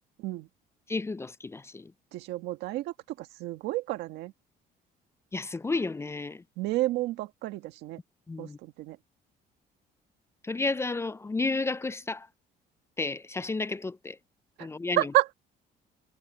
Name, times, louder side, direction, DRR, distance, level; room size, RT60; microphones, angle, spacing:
voice 1, 0.9-1.9 5.3-6.4 8.3-8.6 10.4-12.3 13.0-14.2 14.6-15.1, left 3 dB, 15° left, 0.5 m, -32 dB
voice 2, 2.1-4.3 6.6-8.0 8.4-9.0 14.6-14.7 15.0-15.3, right 17 dB, 90° right, 1.7 m, -30 dB
cardioid pair, 110°, 17 cm